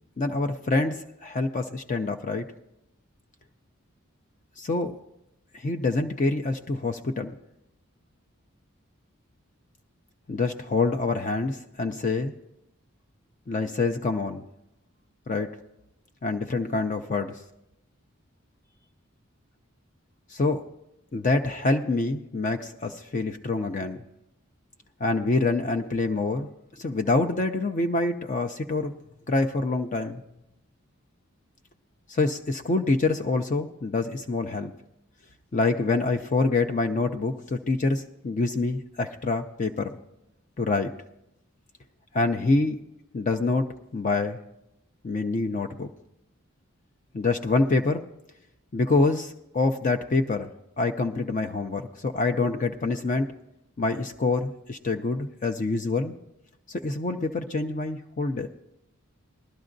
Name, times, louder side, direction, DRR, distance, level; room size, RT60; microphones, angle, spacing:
voice 1, 0.2-2.5 4.6-5.0 5.5-7.3 10.3-12.3 13.5-14.4 15.3-15.5 16.2-17.4 20.3-20.6 21.1-24.0 25.0-26.5 26.8-28.9 29.3-30.2 32.1-34.7 35.5-40.0 40.6-40.9 42.1-42.8 43.1-43.7 43.9-44.4 45.0-45.9 47.1-48.0 48.7-50.5 50.8-53.3 53.8-56.1 56.7-58.5, left 3 dB, 35° left, 6 dB, 0.4 m, -26 dB
19.5 x 12.0 x 2.6 m, 0.85 s
head